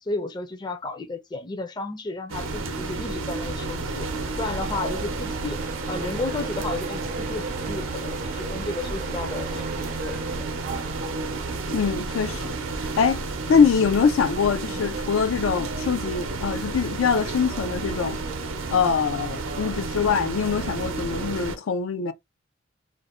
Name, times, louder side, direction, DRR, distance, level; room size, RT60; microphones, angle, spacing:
voice 1, 0.0-4.1 4.4-5.6 5.9-10.5 14.7-15.0 20.0-20.2, left 3 dB, 20° left, 0.4 m, -33 dB
sound 1, 2.3-21.6, right 3 dB, 80° right, 0.6 m, -31 dB
Train, 3.9-20.5, right 3 dB, 40° right, 0.4 m, -39 dB
voice 2, 11.7-12.6 12.8-13.2 13.5-18.2 18.7-22.1, left 6 dB, 85° left, 0.4 m, -23 dB
2.5 x 2.1 x 3.4 m
head